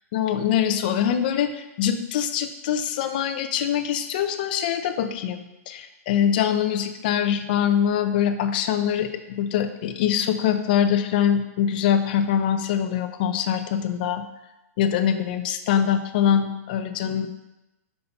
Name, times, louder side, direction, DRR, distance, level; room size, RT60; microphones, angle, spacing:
voice 1, 0.1-9.1 9.4-14.2 14.8-17.3, left 9 dB, 35° left, 8 dB, 0.4 m, -23 dB
5.4 x 4.2 x 5.6 m, 0.97 s
hypercardioid pair, 170°, 9 cm